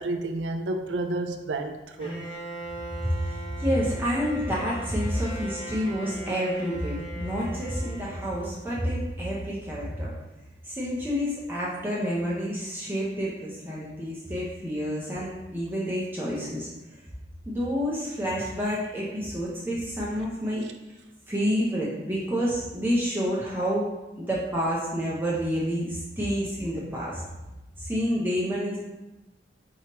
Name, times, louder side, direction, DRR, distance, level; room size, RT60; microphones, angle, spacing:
voice 1, 0.0-2.1, right 2 dB, 85° right, 6 dB, 0.4 m, -30 dB
Bowed string instrument, 2.0-8.9, right 1 dB, 30° left, 1.3 m, -40 dB
voice 2, 3.2-10.1 10.6-16.7 17.5-20.6 21.3-23.9 24.2-27.2 27.8-28.8, equal, 10° right, -6 dB, 0.6 m, -29 dB
4.6 x 3.0 x 2.9 m, 1.1 s
head